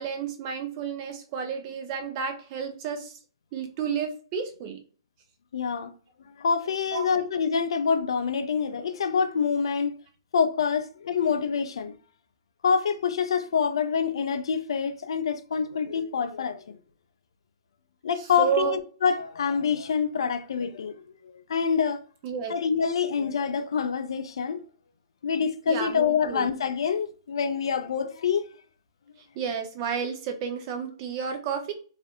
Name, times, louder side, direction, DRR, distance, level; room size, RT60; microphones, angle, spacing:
voice 1, 0.0-3.2 3.5-4.8 6.9-7.3 18.2-18.8 22.2-22.5 25.7-26.5 29.3-31.7, right 7 dB, 40° right, 0.6 m, -31 dB
voice 2, 5.5-5.9 6.4-9.9 10.3-11.9 12.6-16.8 18.0-20.9 21.5-22.0 22.5-24.6 25.2-28.5, left 6 dB, 70° left, 0.4 m, -26 dB
2.5 x 2.4 x 2.3 m
hypercardioid pair, 125°, 3 cm